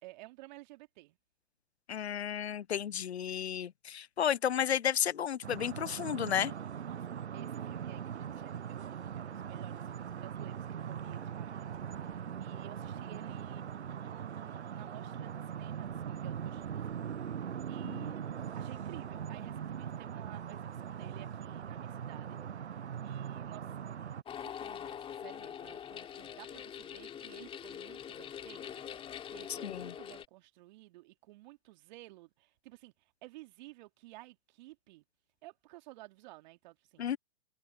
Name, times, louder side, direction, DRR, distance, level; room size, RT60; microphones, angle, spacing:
voice 1, 0.0-1.2 6.8-13.7 14.0-17.3 17.7-18.2 18.6-22.4 23.0-23.9 24.4-35.0 35.4-37.0, right 19 dB, 45° right, 2.5 m, -54 dB
voice 2, 1.9-6.5 17.8-18.1 29.6-29.9 37.0-37.2, left 9 dB, 75° left, 0.7 m, -32 dB
sound 1, 5.4-24.2, right 8 dB, 85° right, 0.7 m, -41 dB
sound 2, 24.3-30.3, left 8 dB, 15° left, 2.7 m, -44 dB
figure-of-eight pair, 120°, 33 cm